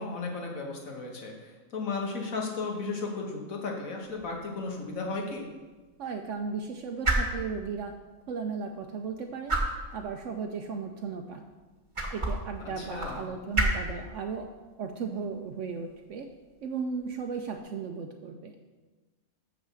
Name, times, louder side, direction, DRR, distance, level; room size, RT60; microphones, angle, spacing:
voice 1, 0.0-5.5 12.8-13.2, left 3 dB, 80° left, 1 dB, 1.8 m, -35 dB
sound 1, 4.0-17.6, right 2 dB, 25° right, 1.1 m, -35 dB
voice 2, 6.0-7.9 8.3-9.6 9.9-11.4 12.1-14.5 14.8-16.3 16.6-18.6, right 5 dB, 70° right, 4 dB, 0.9 m, -35 dB
6.3 x 6.1 x 6.9 m, 1.3 s
omnidirectional pair, 1.4 m